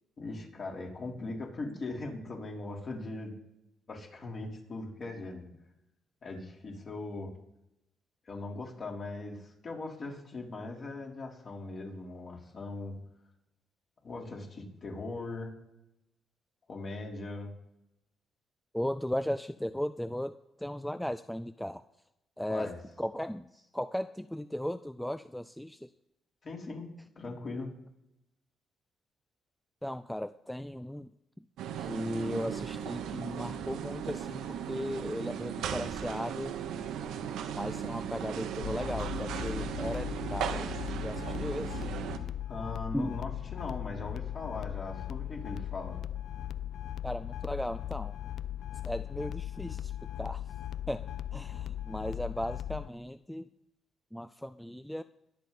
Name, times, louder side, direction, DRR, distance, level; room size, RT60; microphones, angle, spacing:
voice 1, 0.2-3.3 3.9-5.5 6.2-7.3 8.3-13.0 14.0-15.5 16.7-17.5 22.5-22.8 26.4-26.9 27.2-27.7 42.5-46.0, left 2 dB, 45° left, -1 dB, 3.9 m, -40 dB
voice 2, 18.7-21.8 22.4-25.9 29.8-31.1 31.4-31.5 31.8-36.6 37.5-40.7 41.0-41.8 42.9-43.2 47.0-48.2 48.8-50.5 50.9-53.5 54.1-55.0, equal, 5° left, 11 dB, 0.4 m, -36 dB
sound 1, 31.6-42.2, right 8 dB, 85° right, 1.1 m, -37 dB
sound 2, 38.6-52.9, left 11 dB, 65° left, 0.4 m, -38 dB
22.0 x 8.2 x 4.2 m, 0.88 s
cardioid pair, 90°, 0 cm